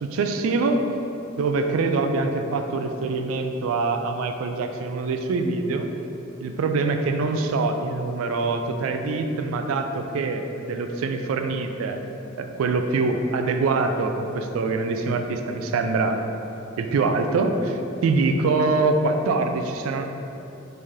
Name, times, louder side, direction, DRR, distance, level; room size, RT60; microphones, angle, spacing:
voice 1, 0.0-0.8 1.4-5.9 6.4-12.0 12.4-16.2 16.8-20.0, right 3 dB, 90° right, 6 dB, 0.3 m, -24 dB
3.2 x 2.7 x 3.5 m, 2.8 s
head